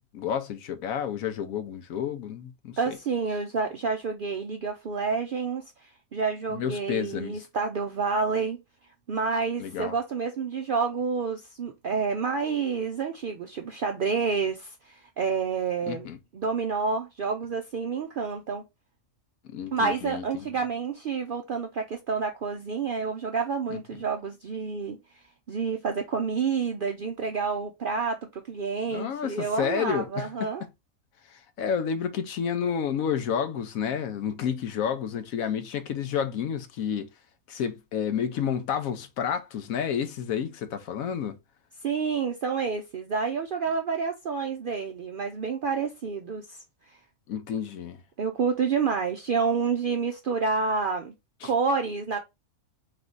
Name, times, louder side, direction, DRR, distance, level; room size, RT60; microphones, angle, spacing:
voice 1, 0.1-3.0 6.5-7.4 9.6-9.9 15.9-16.2 19.4-20.5 28.9-30.5 31.3-37.1 37.5-41.4 47.3-48.0 51.4-51.5, left 8 dB, 80° left, 1.1 m, -30 dB
voice 2, 2.8-8.6 9.1-18.6 19.7-25.0 25.5-30.6 41.8-46.6 46.9-47.0 48.2-51.1 51.4-52.2, right 5 dB, 65° right, 0.5 m, -29 dB
3.5 x 3.2 x 3.7 m
omnidirectional pair, 1.5 m